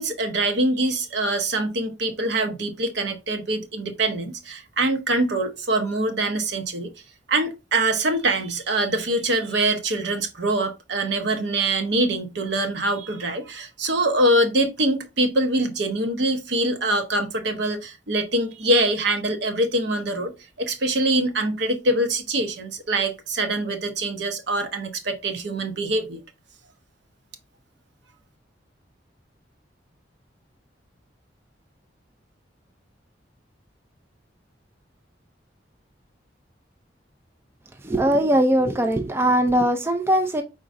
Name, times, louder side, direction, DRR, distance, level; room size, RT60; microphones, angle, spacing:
voice 1, 0.0-6.9 7.3-20.3 20.6-26.2, right 1 dB, 65° right, 0.8 m, -24 dB
voice 2, 37.8-40.4, right 1 dB, 15° right, 0.3 m, -20 dB
5.1 x 3.8 x 2.5 m
head